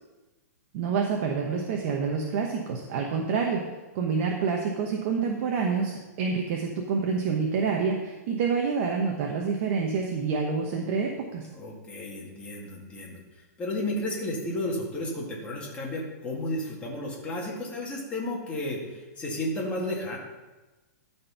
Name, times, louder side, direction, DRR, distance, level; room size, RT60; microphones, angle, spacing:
voice 1, 0.7-3.6 3.9-11.4, right 5 dB, 45° right, 1 dB, 1.0 m, -27 dB
voice 2, 11.5-13.2 13.6-20.2, left 1 dB, 15° left, -3 dB, 2.0 m, -32 dB
12.5 x 4.5 x 5.7 m, 1.2 s
hypercardioid pair, 155°, 9 cm